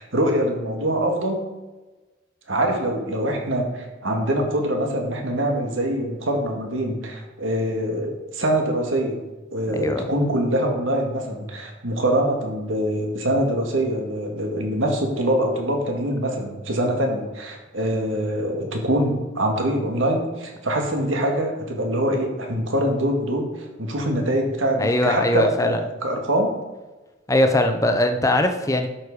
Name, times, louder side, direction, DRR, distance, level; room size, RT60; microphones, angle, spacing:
voice 1, 0.0-1.4 2.5-9.2 9.5-26.5, right 1 dB, 85° right, 2 dB, 2.1 m, -24 dB
voice 2, 9.7-10.0 24.8-25.8 27.3-28.9, left 1 dB, 15° left, 6 dB, 0.8 m, -20 dB
12.0 x 6.5 x 4.9 m, 1.2 s
head